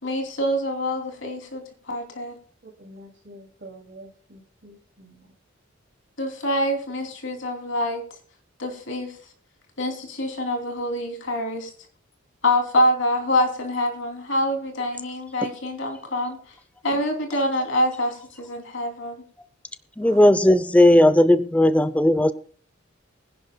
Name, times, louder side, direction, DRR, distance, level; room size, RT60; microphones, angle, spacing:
voice 1, 0.0-2.4 6.2-8.0 8.6-9.2 9.8-11.7 12.4-16.4 16.8-19.2, left 1 dB, 70° left, 3 dB, 2.9 m, -25 dB
voice 2, 2.6-5.3 16.9-17.0 20.0-20.3, right 1 dB, 55° right, -5 dB, 2.7 m, -46 dB
voice 3, 20.0-22.3, left 1 dB, 5° left, 12 dB, 0.5 m, -16 dB
24.0 x 10.5 x 2.2 m, 0.43 s
head